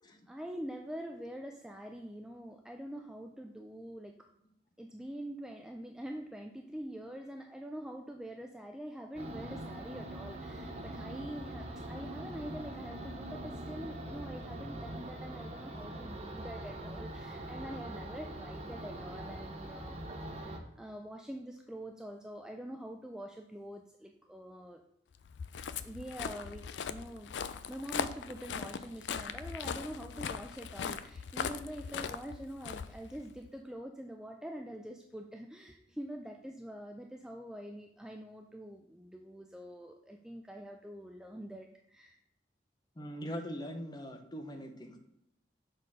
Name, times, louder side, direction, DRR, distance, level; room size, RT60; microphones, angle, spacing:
voice 1, 0.3-4.3 4.8-24.8 25.8-27.3 27.7-42.2, right 1 dB, 5° right, 3 dB, 0.3 m, -45 dB
sound 1, 9.1-20.6, right 1 dB, 35° right, 0.8 m, -43 dB
Walk footsteps, 25.2-33.5, left 6 dB, 80° left, 0.4 m, -40 dB
voice 2, 43.0-45.0, equal, 25° left, 5 dB, 0.8 m, -41 dB
6.5 x 4.2 x 4.8 m, 0.78 s
head